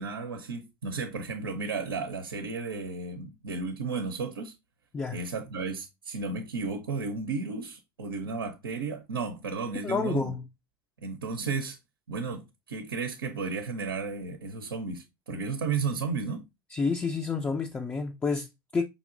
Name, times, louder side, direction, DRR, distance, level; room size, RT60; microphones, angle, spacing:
voice 1, 0.0-4.5 5.1-10.3 11.0-11.8 12.1-16.5, right 4 dB, 85° right, 0.6 m, -33 dB
voice 2, 9.8-10.4 16.7-18.8, left 4 dB, 15° left, 0.4 m, -29 dB
5.2 x 2.8 x 2.4 m
hypercardioid pair, 80°, 12 cm